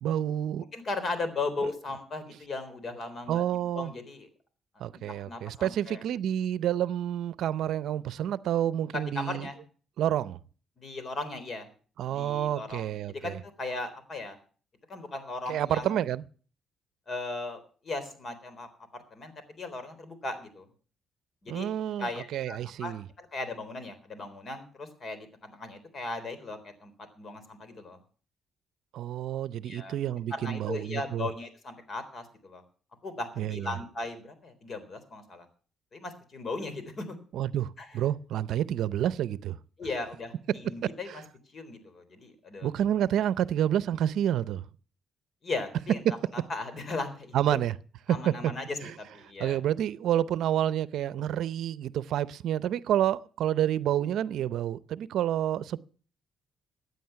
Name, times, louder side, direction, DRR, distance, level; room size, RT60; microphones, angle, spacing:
voice 1, 0.0-0.6 3.3-3.9 4.8-9.5 10.0-10.4 12.0-13.4 15.5-16.2 21.5-23.1 28.9-31.3 33.4-33.7 37.3-39.6 41.1-41.2 42.6-44.6 46.1-46.2 47.3-47.8 48.1-48.5 48.8-48.9 49.4-55.8, right 11 dB, 75° right, 0.6 m, -29 dB
voice 2, 0.7-3.4 3.7-4.3 5.2-6.0 8.9-9.6 10.8-11.7 12.1-14.4 14.9-16.0 17.1-19.3 19.6-20.7 21.4-21.7 22.0-28.0 29.6-30.0 30.3-32.6 33.0-35.5 35.9-37.2 37.8-38.0 39.8-41.1 41.5-42.7 45.4-46.0 46.5-47.6 48.1-49.6, left 3 dB, 45° left, 3.7 m, -37 dB
16.0 x 9.5 x 5.8 m
cardioid pair, 90°, 0 cm